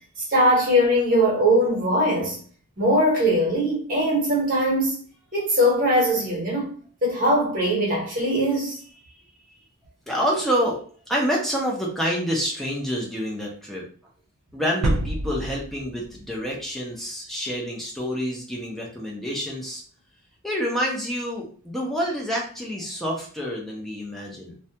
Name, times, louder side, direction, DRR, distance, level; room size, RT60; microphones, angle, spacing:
voice 1, 0.2-2.4 2.8-5.0 5.3-6.7 7.0-8.8, equal, 40° right, 1.0 m, -21 dB
voice 2, 10.1-10.8 11.1-13.9 14.5-19.8 20.4-24.5, equal, ahead, 0.6 m, -27 dB
sound 1, 14.8-16.7 17.0-17.1, right 2 dB, 90° right, 0.4 m, -28 dB
2.3 x 2.1 x 2.7 m
head